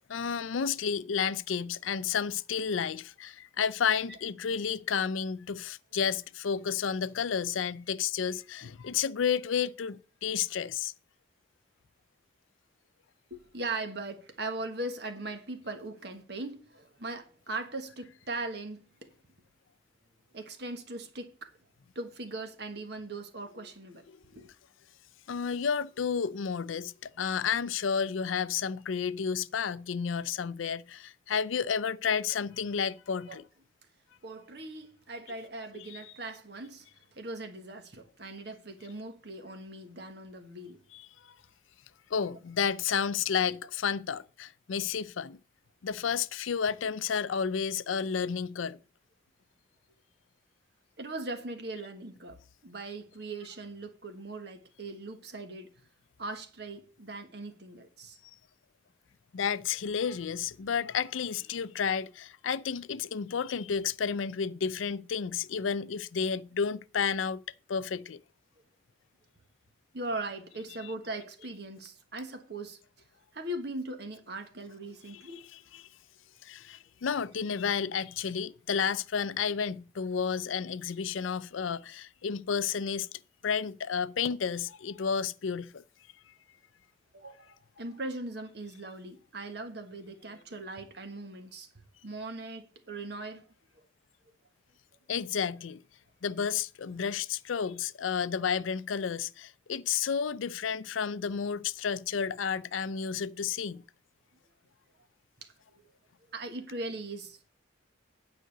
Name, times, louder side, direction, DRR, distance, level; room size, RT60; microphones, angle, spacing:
voice 1, 0.1-10.9 24.1-24.2 25.3-33.4 35.7-36.1 40.9-41.4 42.1-45.4 45.8-48.8 59.3-67.4 67.7-68.2 70.8-70.9 75.1-75.8 76.4-85.8 95.1-95.8 96.2-103.8, left 6 dB, 85° left, 0.5 m, -31 dB
voice 2, 13.3-19.1 20.3-21.5 21.9-24.0 24.3-24.5 33.3-33.4 34.2-40.8 51.0-55.7 56.2-58.2 69.9-72.8 73.3-75.4 87.1-91.7 92.0-93.4 93.8-93.9 105.4-105.5 106.3-107.5, right 2 dB, 55° right, 1.4 m, -40 dB
9.3 x 5.0 x 7.8 m
head